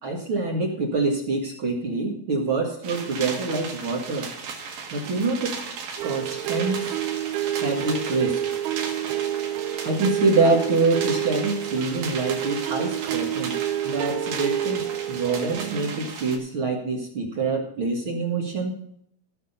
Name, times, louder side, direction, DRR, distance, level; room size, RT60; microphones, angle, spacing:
voice 1, 0.0-4.3 4.9-5.6 6.0-6.9 7.5-8.4 9.8-13.6 13.8-18.8, right 3 dB, 45° right, 0 dB, 1.8 m, -25 dB
sound 1, 2.8-16.4, right 5 dB, 70° right, 3.5 m, -36 dB
sound 2, 6.0-16.1, right 12 dB, 90° right, 2.6 m, -29 dB
16.0 x 6.7 x 5.6 m, 0.69 s
omnidirectional pair, 4.3 m